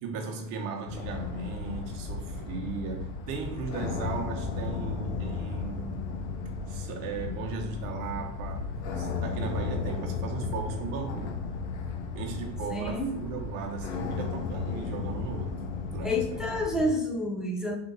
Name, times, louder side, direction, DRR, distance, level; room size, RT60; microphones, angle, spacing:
voice 1, 0.0-6.1 6.7-11.4 12.1-15.6 15.9-16.4, right 4 dB, 55° right, 1.1 m, -37 dB
sound 1, 0.9-16.9, left 4 dB, 65° left, 0.8 m, -34 dB
voice 2, 12.7-13.2 16.0-17.8, left 1 dB, ahead, 0.5 m, -29 dB
3.8 x 2.8 x 4.0 m
supercardioid pair, 115°, 39 cm